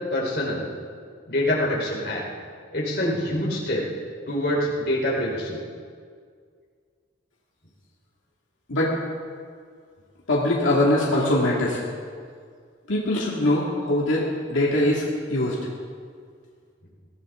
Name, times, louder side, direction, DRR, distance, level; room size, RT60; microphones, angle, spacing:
voice 1, 0.1-0.7 1.3-2.2 2.7-3.9 4.3-5.6, left 1 dB, 55° left, -3 dB, 4.1 m, -25 dB
voice 2, 10.3-11.8 12.9-15.0 15.3-15.6, left 1 dB, 90° left, -4 dB, 2.3 m, -22 dB
22.5 x 15.5 x 3.8 m, 2.1 s
head